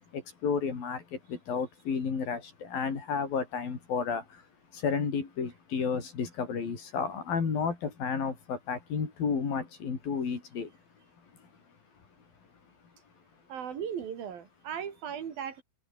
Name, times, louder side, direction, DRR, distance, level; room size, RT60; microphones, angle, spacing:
voice 1, 0.1-4.2 4.8-10.7, left 6 dB, 70° left, 6.4 m, -32 dB
voice 2, 13.5-15.6, right 8 dB, 75° right, 4.5 m, -37 dB
open air
omnidirectional pair, 4.2 m